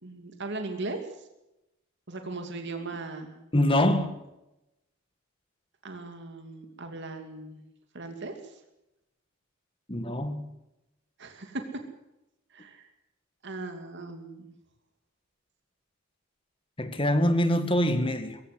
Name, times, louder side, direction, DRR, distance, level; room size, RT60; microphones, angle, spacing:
voice 1, 0.0-1.0 2.1-3.3 5.8-7.6 7.9-8.3 11.2-11.6 12.5-12.8 13.4-14.5, right 2 dB, 55° right, 2.7 m, -38 dB
voice 2, 3.5-4.1 9.9-10.5 16.8-18.4, left 1 dB, 25° left, 1.9 m, -24 dB
22.5 x 15.5 x 8.1 m
head